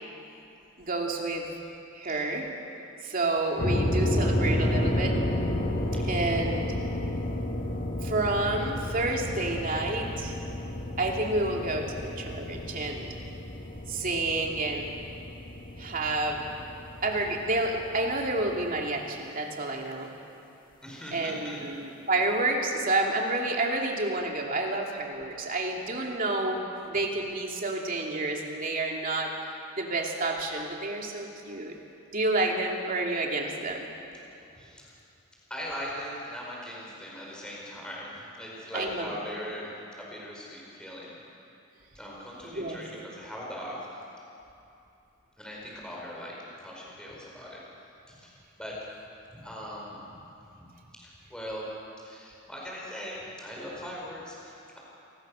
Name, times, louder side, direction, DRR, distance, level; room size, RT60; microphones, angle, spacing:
voice 1, 0.8-1.5 1.9-2.5 3.0-5.2 6.0-6.8 8.0-10.4 11.0-13.1 13.9-14.9 15.8-16.5 17.0-20.1 21.1-26.6 26.9-29.3 29.8-31.7 32.1-33.9 38.7-39.2 42.4-42.8, right 2 dB, 40° right, 0 dB, 2.8 m, -29 dB
sound 1, 3.6-18.8, left 1 dB, 40° left, 2.2 m, -31 dB
voice 2, 20.8-21.6 34.6-34.9 35.5-39.7 40.0-41.2 41.9-43.8 45.4-47.6 48.1-48.3 48.6-48.9 49.3-50.2 51.0-51.7 52.0-54.8, equal, 5° left, -4 dB, 4.9 m, -40 dB
28.0 x 19.5 x 6.5 m, 2.7 s
head